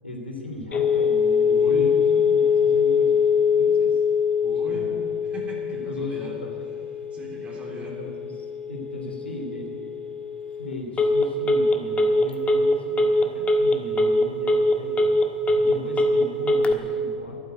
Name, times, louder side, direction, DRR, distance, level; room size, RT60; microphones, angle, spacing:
voice 1, 0.0-3.2 3.5-4.0 4.5-5.0 5.9-6.5 7.8-9.7 10.6-15.2 15.5-17.4, left 1 dB, 90° left, 1 dB, 3.0 m, -37 dB
Telephone, 0.7-16.7, left 4 dB, 20° left, 1.5 m, -22 dB
voice 2, 1.5-1.9 4.4-4.9 5.2-6.4 7.1-8.0, right 2 dB, 25° right, -2 dB, 3.2 m, -39 dB
12.0 x 9.3 x 9.7 m, 2.3 s
figure-of-eight pair, 90°, 6 cm